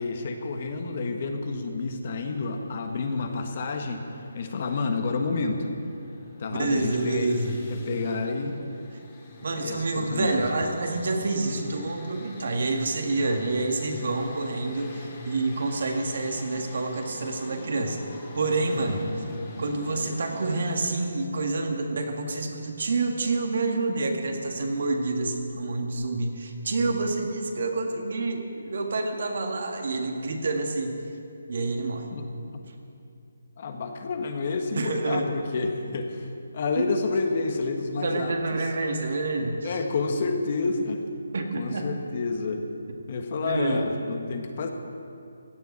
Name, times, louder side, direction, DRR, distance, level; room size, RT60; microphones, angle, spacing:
voice 1, 0.0-4.0 4.3-5.7 6.4-8.6 9.5-10.5 18.7-19.3 32.1-32.3 32.5-32.6 33.6-36.3 36.5-38.6 39.6-41.0 41.5-42.7 43.1-44.7, left 3 dB, 40° left, 5 dB, 1.3 m, -29 dB
sound 1, 2.1-20.9, left 1 dB, 25° left, 2.4 m, -46 dB
voice 2, 6.5-7.6 9.4-18.0 18.3-19.0 19.6-31.0 31.5-32.1 34.7-35.3 36.8-36.9 38.0-39.8 41.3-41.9 43.4-43.8, right 3 dB, 60° right, 3 dB, 1.9 m, -28 dB
16.0 x 7.0 x 9.4 m, 2.6 s
hypercardioid pair, 165°, 0 cm